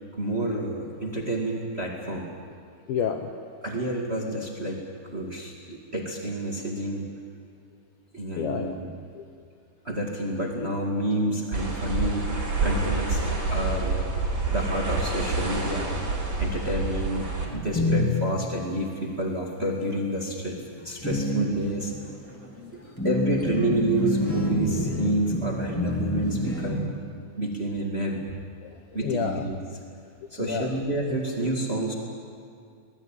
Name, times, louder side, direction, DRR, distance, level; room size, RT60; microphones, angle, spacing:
voice 1, 0.1-2.3 3.6-4.8 5.1-7.1 8.1-8.9 9.8-16.0 16.4-20.6 20.8-21.9 23.0-26.9 27.4-28.2 28.9-29.6 30.3-31.9, right 1 dB, 40° right, -1 dB, 0.8 m, -29 dB
voice 2, 2.9-3.3 8.3-8.8 9.1-9.2 15.7-15.8 22.6-23.2 28.6-29.5 30.4-30.8, left 7 dB, 75° left, 5 dB, 2.2 m, -31 dB
sound 1, 11.5-17.5, right 3 dB, 20° right, 4.2 m, -27 dB
sound 2, 17.4-18.6 19.6-19.9 20.3-26.8, left 1 dB, 5° left, 1.1 m, -28 dB
24.0 x 20.0 x 9.2 m, 2.3 s
omnidirectional pair, 5.6 m